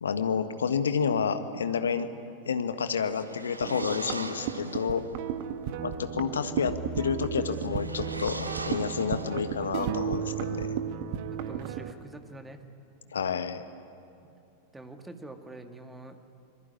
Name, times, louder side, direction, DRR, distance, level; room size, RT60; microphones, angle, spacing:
voice 1, 0.0-2.1 2.4-5.0 5.8-10.7 13.1-13.6, left 6 dB, 70° left, 10 dB, 1.5 m, -29 dB
sound 1, 3.0-5.1 7.4-9.8, right 2 dB, 80° right, 1.5 m, -41 dB
sound 2, 3.6-11.9, right 8 dB, 50° right, 1.6 m, -34 dB
voice 2, 11.3-12.6 14.2-14.4 14.7-16.2, right 2 dB, 10° right, 7 dB, 2.1 m, -46 dB
25.0 x 22.0 x 9.9 m, 2.7 s
figure-of-eight pair, 90°, 0 cm